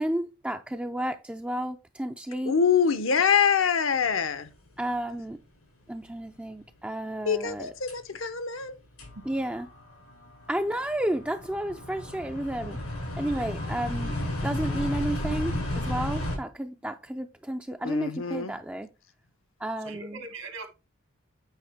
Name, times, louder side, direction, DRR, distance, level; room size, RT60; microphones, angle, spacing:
voice 1, 0.0-2.5 4.8-5.4 5.9-7.7 9.3-9.7 10.5-12.8 13.2-14.1 14.4-18.9 19.6-20.2, right 1 dB, 5° right, 0.3 m, -32 dB
voice 2, 2.4-4.5 7.2-8.8 17.8-18.5, left 6 dB, 65° left, 0.7 m, -25 dB
sound 1, 5.1-5.2 7.9-8.0 8.6-8.7 9.0-16.4, left 1 dB, 85° left, 4.6 m, -33 dB
voice 3, 19.8-20.7, right 3 dB, 75° right, 1.7 m, -41 dB
8.9 x 4.9 x 3.4 m
head